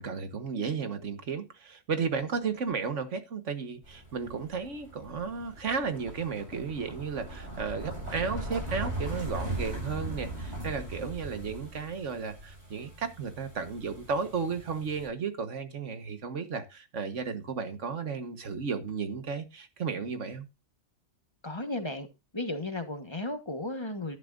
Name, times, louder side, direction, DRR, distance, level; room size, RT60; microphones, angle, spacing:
voice 1, 0.0-20.5, right 5 dB, 90° right, 1.7 m, -34 dB
sound 1, 3.8-15.1, right 1 dB, 70° right, 7.6 m, -39 dB
voice 2, 21.4-22.1 22.3-24.2, left 2 dB, 25° left, 1.3 m, -34 dB
12.0 x 11.0 x 2.6 m
omnidirectional pair, 1.2 m